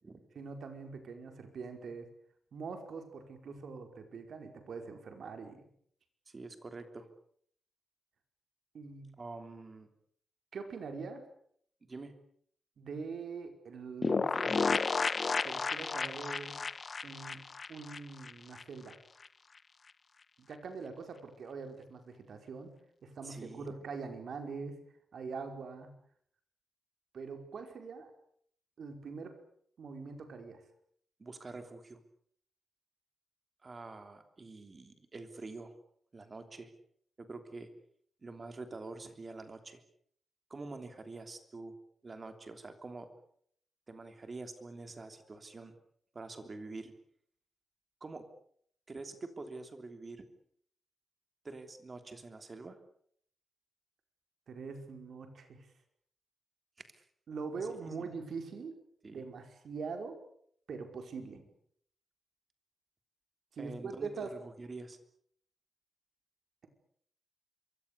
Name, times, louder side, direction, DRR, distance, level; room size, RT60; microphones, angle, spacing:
voice 1, 0.3-2.1 2.5-5.6 8.7-9.1 10.5-11.2 12.8-14.9 15.4-16.6 17.0-17.4 17.7-19.0 20.4-22.8 23.0-24.8 25.1-25.9 27.1-28.1 28.8-29.4 29.8-30.6 54.5-55.7 57.3-58.8 59.1-60.2 60.7-61.4 63.5-64.3, right 4 dB, 60° right, 6 dB, 5.1 m, -43 dB
voice 2, 6.3-7.1 9.2-9.9 11.8-12.1 23.2-23.8 31.2-32.0 33.6-35.7 36.1-36.7 37.2-37.7 38.2-39.8 40.5-41.7 42.0-43.1 43.9-45.7 46.1-46.9 48.0-48.3 48.9-50.3 51.4-52.8 56.8-57.1 57.6-58.1 59.0-59.2 63.6-65.0, right 3 dB, 30° right, 8 dB, 3.1 m, -46 dB
sound 1, 14.0-18.6 18.9-19.0 19.2-19.3, left 4 dB, 35° left, 1.1 m, -32 dB
26.5 x 24.5 x 6.9 m, 0.64 s
wide cardioid pair, 160°, 0 cm